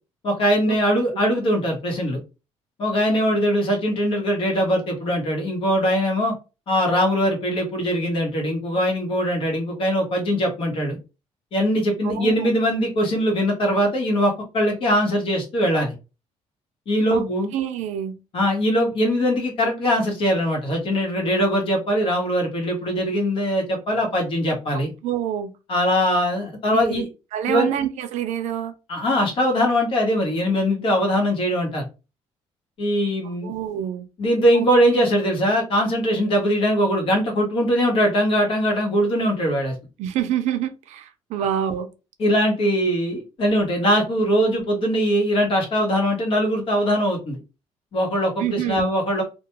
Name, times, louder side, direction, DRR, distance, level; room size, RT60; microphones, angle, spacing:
voice 1, 0.2-2.2 2.8-6.3 6.7-11.0 11.5-15.9 16.9-17.5 18.3-24.9 25.7-27.1 27.5-27.7 28.9-31.8 32.8-33.5 34.2-39.7 42.2-47.4 47.9-49.2, equal, 50° left, 1.0 m, -21 dB
voice 2, 12.0-12.5 17.1-17.2 17.5-18.2 25.0-25.5 26.7-27.0 27.3-28.7 33.2-34.1 34.5-34.7 40.0-41.9 48.4-48.9, right 10 dB, 85° right, 0.4 m, -26 dB
2.3 x 2.2 x 2.9 m
cardioid pair, 155°, 12 cm